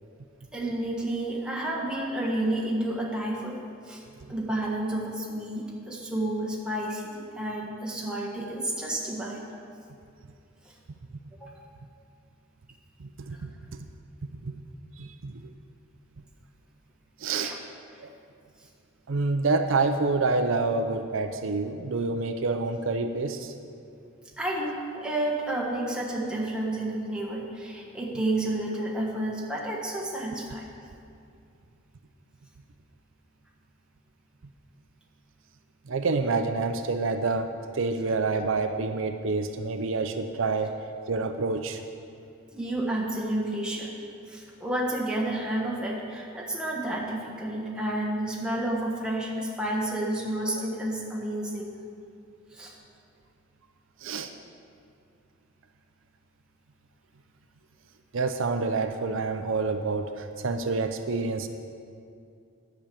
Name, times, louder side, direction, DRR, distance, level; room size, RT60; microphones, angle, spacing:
voice 1, 0.5-4.0 4.3-9.5 10.6-10.7 11.4-11.6 13.3-13.4 17.3-17.5 24.4-30.6 42.5-43.9 44.3-51.8 52.5-52.7, right 1 dB, 5° right, -4 dB, 1.5 m, -30 dB
voice 2, 13.0-13.5 14.4-14.6 15.0-15.3 17.2-17.6 18.0-18.1 19.1-23.5 35.9-40.8 41.1-41.8 54.0-54.3 58.1-61.5, right 3 dB, 70° right, 7 dB, 0.5 m, -27 dB
10.5 x 6.2 x 8.5 m, 2.5 s
head